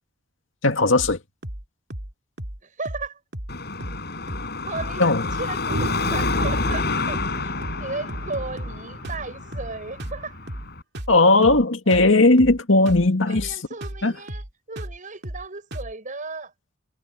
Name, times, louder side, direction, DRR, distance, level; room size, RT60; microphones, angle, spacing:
voice 1, 0.6-1.2 5.0-5.2 11.1-13.5 14.0-14.1, left 2 dB, 80° left, 2.2 m, -17 dB
sound 1, 0.9-1.2 1.4-1.6 1.9-2.1 2.4-2.6 2.8-3.1 3.3-3.5 3.8-4.0 4.3-4.5 4.8-5.0 5.2-5.5 5.7-5.9 6.2-6.4 6.7-6.9 7.1-7.4 7.6-7.8 8.1-8.8 9.0-9.3 9.5-9.7 10.0-10.2 10.5-10.7 10.9-11.2 11.4-11.6 11.9-12.1 12.4-12.6 12.8-13.1 13.3-13.5 13.8-14.0 14.3-14.5 14.8-15.0 15.2-15.4 15.7-15.9, right 1 dB, 60° right, 2.4 m, -34 dB
voice 2, 2.6-3.2 4.7-5.0 5.4-7.5 7.8-10.3 11.9-12.0 13.3-16.5, right 3 dB, 40° right, 7.0 m, -35 dB
Car passing by / Traffic noise roadway noise / Engine, 3.5-10.8, left 3 dB, 55° left, 6.8 m, -29 dB
sound 2, 5.7-10.4, right 1 dB, 85° right, 3.5 m, -36 dB
head